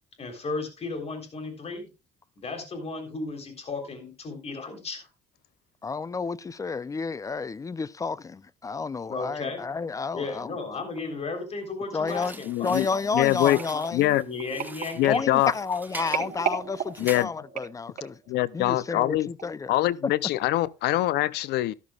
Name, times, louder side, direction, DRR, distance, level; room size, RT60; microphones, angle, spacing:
voice 1, 0.2-1.9 2.4-5.1 9.1-9.6 10.1-12.8 13.5-13.6 14.2-15.2, left 3 dB, 40° left, 3.7 m, -34 dB
voice 2, 5.8-10.5 11.9-14.2 15.1-18.2 18.5-19.7 20.0-20.1, left 4 dB, 20° left, 0.4 m, -31 dB
sound 1, 12.1-17.2, right 2 dB, 10° right, 1.0 m, -44 dB
voice 3, 12.4-12.9 13.1-13.6 13.9-14.2 15.0-15.5 17.0-17.3 18.3-19.3 19.7-21.7, left 15 dB, 75° left, 0.6 m, -23 dB
sound 2, 13.3-18.3 18.9-19.1 19.4-19.5, right 7 dB, 55° right, 3.5 m, -36 dB
12.5 x 12.5 x 2.3 m
cardioid pair, 110°, 17 cm